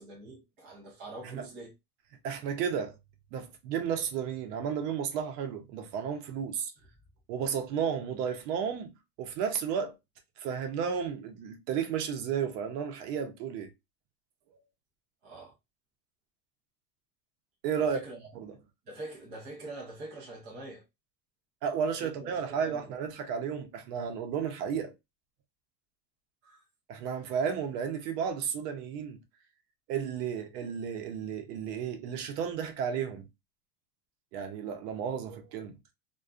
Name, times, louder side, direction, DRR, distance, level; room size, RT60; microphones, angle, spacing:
voice 1, 0.0-1.7 15.2-15.5 17.8-18.4 18.9-20.8 22.0-22.9 26.4-26.6, right 2 dB, 25° right, 0.5 m, -45 dB
voice 2, 2.2-2.9 3.3-6.7 7.3-9.9 10.4-13.7 17.6-18.0 18.3-18.5 21.6-24.9 26.9-29.2 29.9-33.3 34.3-35.8, right 7 dB, 75° right, 0.8 m, -33 dB
2.5 x 2.3 x 2.3 m
cardioid pair, 175°, 48 cm